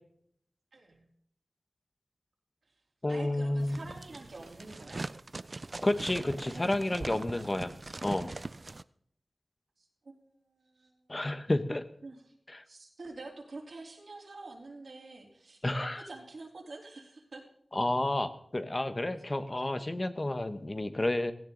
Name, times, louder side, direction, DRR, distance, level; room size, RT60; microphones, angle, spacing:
voice 1, 0.7-1.0 3.1-5.0 6.4-7.2 9.8-10.9 12.0-12.2 12.7-17.4, right 3 dB, 85° right, 0 dB, 3.5 m, -47 dB
voice 2, 3.0-3.8 5.8-7.7 8.0-8.3 11.1-11.9 12.5-12.6 15.6-16.1 17.7-21.3, left 1 dB, 35° left, 10 dB, 1.1 m, -31 dB
sound 1, 3.6-8.8, right 2 dB, 50° right, 0.4 m, -41 dB
16.5 x 15.5 x 3.9 m, 0.69 s
wide cardioid pair, 65°, 0 cm